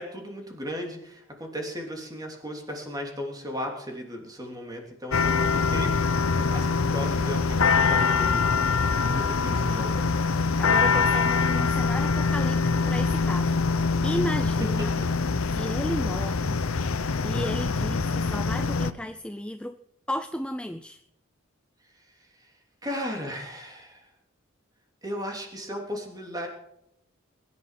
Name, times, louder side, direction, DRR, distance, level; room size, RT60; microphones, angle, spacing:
voice 1, 0.0-10.0 14.6-15.1 22.8-24.0 25.0-26.5, equal, 20° right, 1 dB, 3.2 m, -36 dB
sound 1, 5.1-18.9, left 4 dB, 85° left, 0.8 m, -24 dB
voice 2, 10.6-13.5 14.0-14.9 15.5-16.6 17.0-19.8 20.1-21.0, left 1 dB, 5° left, 9 dB, 0.5 m, -33 dB
21.0 x 11.0 x 5.9 m, 0.79 s
head